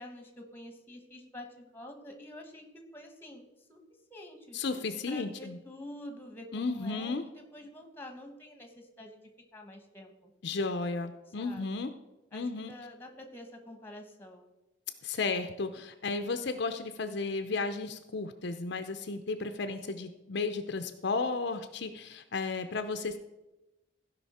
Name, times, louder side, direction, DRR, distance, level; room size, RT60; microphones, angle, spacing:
voice 1, 0.0-2.6 2.9-3.4 3.7-3.8 4.1-4.6 5.1-9.2 9.5-10.3 11.4-11.8 12.3-14.5 19.8-20.2, left 1 dB, 10° left, 4 dB, 1.1 m, -47 dB
voice 2, 4.5-5.6 6.5-7.2 10.4-11.9 12.3-12.7 15.0-23.2, left 3 dB, 55° left, 8 dB, 0.5 m, -34 dB
15.5 x 5.4 x 4.2 m, 1.0 s
head